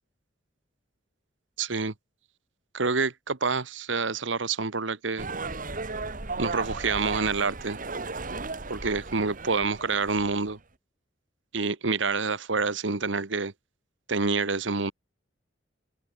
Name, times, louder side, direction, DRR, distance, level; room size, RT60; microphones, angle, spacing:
voice 1, 1.6-1.9 2.7-5.3 6.4-7.8 8.7-10.6 11.5-13.5 14.1-14.9, right 4 dB, 75° right, 1.3 m, -27 dB
sound 1, 5.2-10.5, right 3 dB, 45° right, 2.2 m, -35 dB
head